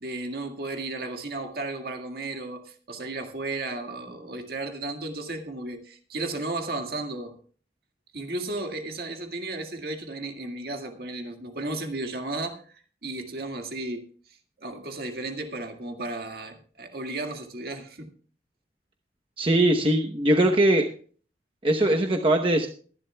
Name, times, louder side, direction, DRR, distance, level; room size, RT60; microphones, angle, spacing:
voice 1, 0.0-7.3 8.1-14.0 14.6-18.1, right 2 dB, 60° right, 4 dB, 1.9 m, -34 dB
voice 2, 19.4-20.9 21.6-22.7, right 1 dB, 30° right, 3 dB, 0.9 m, -21 dB
22.0 x 11.0 x 2.3 m, 0.42 s
head